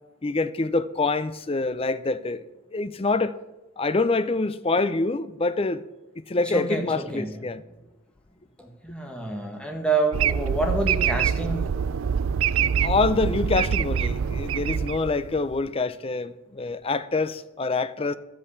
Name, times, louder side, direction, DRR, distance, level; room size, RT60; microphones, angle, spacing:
voice 1, 0.2-2.4 2.7-3.3 3.8-5.8 6.3-7.6 12.8-18.1, left 3 dB, 30° left, 0.5 m, -26 dB
voice 2, 6.4-7.4 8.6-11.6, right 2 dB, 5° left, 1.7 m, -28 dB
sound 1, 10.1-15.5, right 7 dB, 85° right, 0.4 m, -25 dB
12.5 x 8.6 x 7.1 m
head